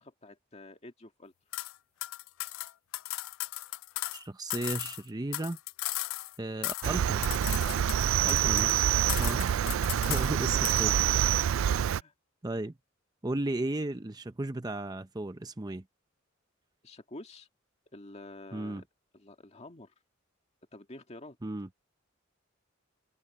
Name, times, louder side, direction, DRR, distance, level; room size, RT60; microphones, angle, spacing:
voice 1, 0.0-1.3 9.3-10.6 11.6-12.1 16.8-17.5 17.9-18.8 19.1-19.9 20.7-21.4, left 2 dB, 30° left, 2.0 m, -49 dB
sound 1, 1.5-1.7 2.0-4.2 4.5-6.4 6.6-7.0 7.2-8.8 9.1-10.3 10.6-10.9, left 18 dB, 75° left, 0.3 m, -36 dB
voice 2, 4.1-5.6 6.4-7.3 8.2-8.9 9.2-9.4 10.0-11.0 12.4-12.7 13.2-15.8 18.5-18.8 21.4-21.7, right 2 dB, 20° right, 0.6 m, -35 dB
Cricket, 6.8-12.0, right 10 dB, 75° right, 0.3 m, -26 dB
open air
head